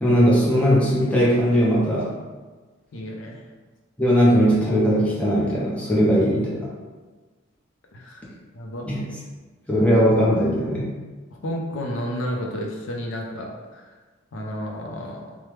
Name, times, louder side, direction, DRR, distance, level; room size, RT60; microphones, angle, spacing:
voice 1, 0.0-2.1 4.0-6.7 8.9-9.1 9.7-10.9, equal, 5° left, -6 dB, 0.5 m, -19 dB
voice 2, 2.9-3.4 7.9-8.3 8.5-8.9 11.4-13.8 14.3-15.4, equal, 70° left, 0 dB, 0.5 m, -31 dB
3.1 x 2.0 x 3.2 m, 1.3 s
head